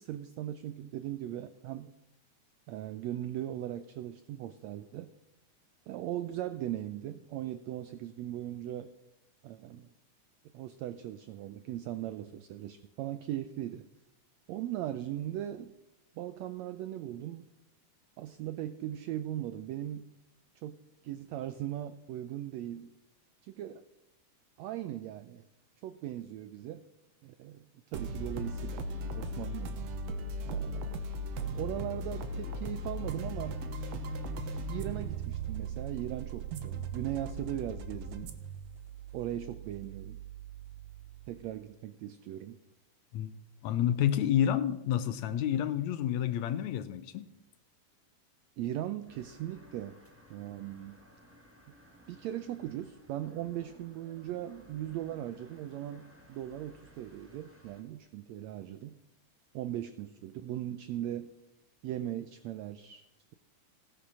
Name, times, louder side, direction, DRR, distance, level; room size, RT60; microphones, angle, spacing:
voice 1, 0.0-1.9 2.7-5.1 5.9-8.9 9.4-9.9 10.5-13.9 14.5-15.7 16.2-17.5 18.2-20.0 20.6-20.8 21.0-23.0 23.4-23.8 24.6-25.4 25.8-26.8 27.2-28.9 29.1-29.8 30.4-30.9 31.5-33.6 34.7-38.3 39.1-40.2 41.3-42.6 48.6-50.0 50.3-51.0 52.1-59.0 59.5-61.3 61.8-63.1, right 12 dB, 80° right, 12 dB, 1.6 m, -39 dB
sound 1, 27.9-41.3, right 2 dB, 65° right, 2.1 m, -38 dB
voice 2, 43.6-47.3, left 10 dB, 75° left, 12 dB, 1.9 m, -29 dB
sound 2, 49.1-57.8, equal, 5° right, 1.8 m, -58 dB
17.0 x 10.0 x 6.1 m, 0.90 s
omnidirectional pair, 3.6 m